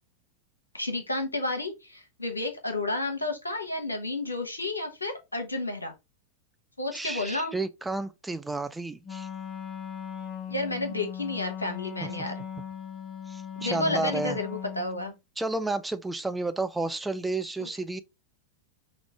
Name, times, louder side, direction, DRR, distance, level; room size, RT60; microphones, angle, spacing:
voice 1, 0.7-5.9 6.8-7.5 10.5-12.4 13.6-15.1 17.6-17.7, left 2 dB, 80° left, 1.0 m, -31 dB
voice 2, 6.9-9.3 12.0-12.1 13.3-14.4 15.4-18.0, right 2 dB, 5° right, 0.4 m, -31 dB
Wind instrument woodwind instrument, 9.0-15.1, left 8 dB, 25° left, 0.8 m, -38 dB
5.2 x 2.4 x 3.5 m
figure-of-eight pair, 90°, 0 cm